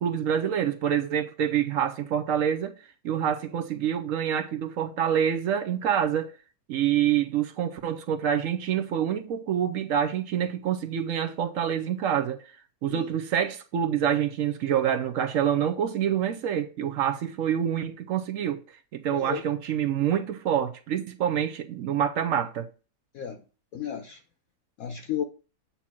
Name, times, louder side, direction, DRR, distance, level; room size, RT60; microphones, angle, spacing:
voice 1, 0.0-2.7 3.0-6.3 6.7-12.4 12.8-18.6 18.9-22.7, right 9 dB, 65° right, 0.9 m, -26 dB
voice 2, 19.1-19.4 23.1-23.4 23.7-24.2 24.8-25.2, left 8 dB, 65° left, 1.0 m, -33 dB
8.5 x 2.9 x 5.9 m
omnidirectional pair, 1.8 m